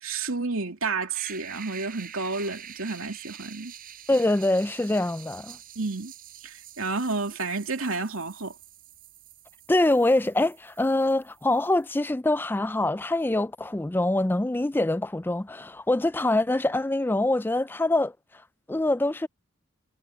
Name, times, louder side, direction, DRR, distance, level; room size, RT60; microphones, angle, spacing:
voice 1, 0.0-3.7 5.8-6.1 6.4-8.5, right 3 dB, 90° right, 2.7 m, -30 dB
sound 1, 1.1-11.9, right 10 dB, 45° right, 6.2 m, -46 dB
voice 2, 4.1-5.6 9.7-18.1 18.7-19.3, left 2 dB, 10° left, 0.3 m, -24 dB
head